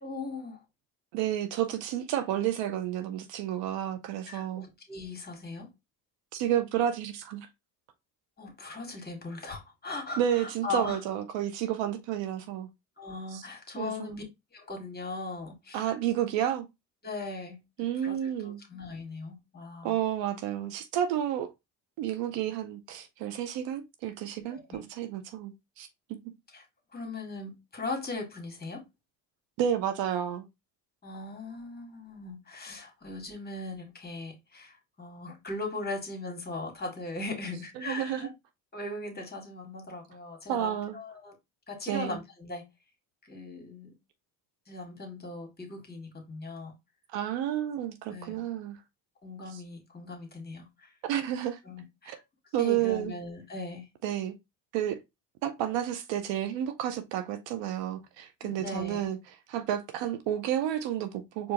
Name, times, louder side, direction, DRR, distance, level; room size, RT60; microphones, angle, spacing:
voice 1, 0.0-0.6 4.3-5.7 8.4-11.0 13.0-14.2 14.5-15.9 17.0-17.6 18.0-20.0 24.5-24.7 26.5-26.6 26.9-28.9 31.0-38.3 38.7-41.4 41.7-42.6 43.2-43.9 44.7-46.7 48.1-48.4 49.2-50.9 51.7-52.2 52.6-53.9 58.4-59.1, left 2 dB, 20° left, 1.8 m, -39 dB
voice 2, 1.1-4.7 6.3-7.5 10.2-12.7 13.3-13.4 13.8-14.2 15.7-16.7 17.8-18.6 19.8-21.5 22.0-25.9 29.6-30.5 37.8-38.3 40.5-41.0 41.9-42.2 47.1-48.8 49.5-49.6 51.0-51.6 52.1-52.2 52.5-53.1 54.0-54.3 54.7-55.0 55.4-59.2 59.5-61.5, right 11 dB, 60° right, 0.7 m, -31 dB
4.6 x 2.6 x 2.9 m
hypercardioid pair, 65°, 49 cm